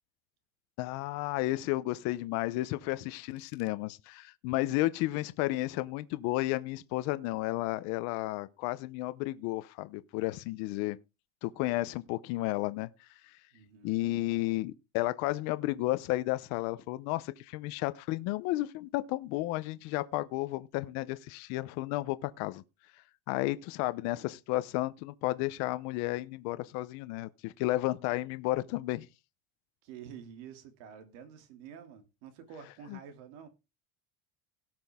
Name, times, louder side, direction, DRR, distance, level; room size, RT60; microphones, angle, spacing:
voice 1, 0.8-11.0 11.4-12.9 13.8-22.6 23.3-29.1 32.9-33.0, left 18 dB, 50° left, 0.6 m, -32 dB
voice 2, 13.5-14.1 29.8-33.5, right 8 dB, 75° right, 2.6 m, -49 dB
17.5 x 6.1 x 3.5 m
cardioid pair, 180°, 36 cm